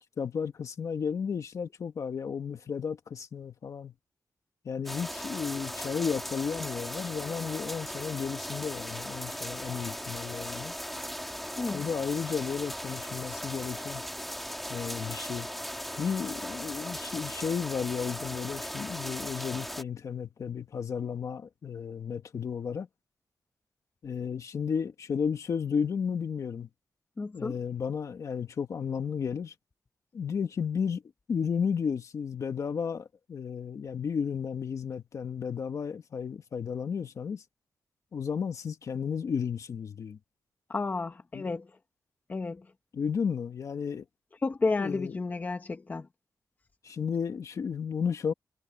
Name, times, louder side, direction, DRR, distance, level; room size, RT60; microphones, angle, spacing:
voice 1, 0.2-3.9 4.6-10.7 11.7-14.0 14.7-15.5 16.0-22.9 24.0-26.7 27.3-29.5 30.1-31.0 31.3-37.4 38.1-40.2 41.3-41.5 42.9-44.0 44.8-45.2 46.8-48.3, left 6 dB, 60° left, 1.6 m, -33 dB
sound 1, 4.8-19.8, equal, ahead, 1.8 m, -38 dB
voice 2, 27.2-27.6 40.7-41.7 42.3-42.6 44.4-46.1, left 3 dB, 25° left, 1.2 m, -31 dB
wide cardioid pair, 175°, 6 cm